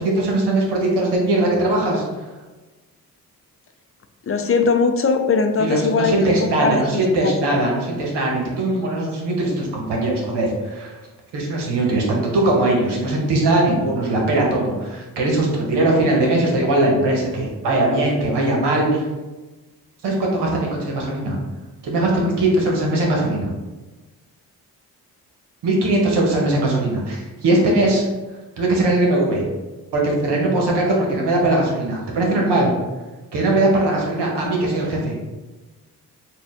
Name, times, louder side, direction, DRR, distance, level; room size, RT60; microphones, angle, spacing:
voice 1, 0.0-2.0 5.6-11.0 11.3-19.1 20.0-21.4 21.8-23.5 25.6-28.0 28.6-29.4 29.9-32.7 33.3-35.1, right 2 dB, 85° right, -1 dB, 1.1 m, -20 dB
voice 2, 4.3-7.5, left 4 dB, 35° left, 6 dB, 0.5 m, -20 dB
4.2 x 2.4 x 3.6 m, 1.2 s
supercardioid pair, 50°, 40 cm